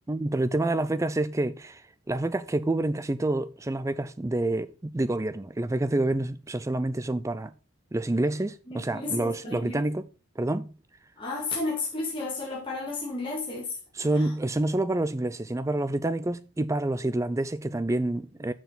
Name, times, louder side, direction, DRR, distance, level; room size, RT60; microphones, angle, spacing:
voice 1, 0.1-1.8 2.1-7.5 7.9-10.1 10.4-10.7 13.9-18.5, right 2 dB, 15° right, 0.3 m, -28 dB
voice 2, 8.7-9.8 11.2-13.7 14.1-14.3, left 3 dB, 20° left, 2.0 m, -32 dB
6.8 x 6.3 x 3.9 m
head